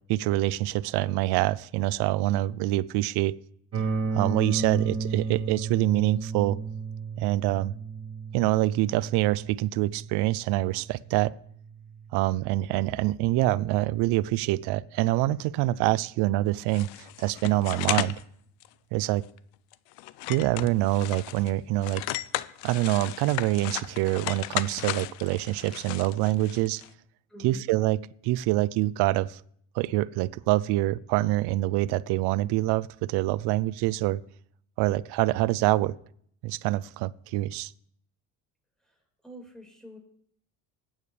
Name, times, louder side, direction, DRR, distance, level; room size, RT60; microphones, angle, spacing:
voice 1, 0.1-3.4 4.1-6.6 7.2-7.7 8.3-11.4 12.1-18.1 18.9-19.2 20.3-22.0 22.6-26.8 27.4-28.0 28.2-29.4 29.7-34.2 34.8-35.9 36.4-37.7, right 16 dB, 65° right, 0.6 m, -25 dB
sound 1, 3.7-13.6, right 4 dB, 35° right, 1.6 m, -34 dB
sound 2, 16.7-18.2 18.6-18.7 19.2-19.4 19.7-21.5 21.8-26.9, left 16 dB, 75° left, 0.7 m, -35 dB
voice 2, 27.3-27.6 38.8-39.0 39.2-40.0, left 1 dB, ahead, 4.8 m, -46 dB
20.0 x 9.0 x 3.3 m
supercardioid pair, 95°, 42 cm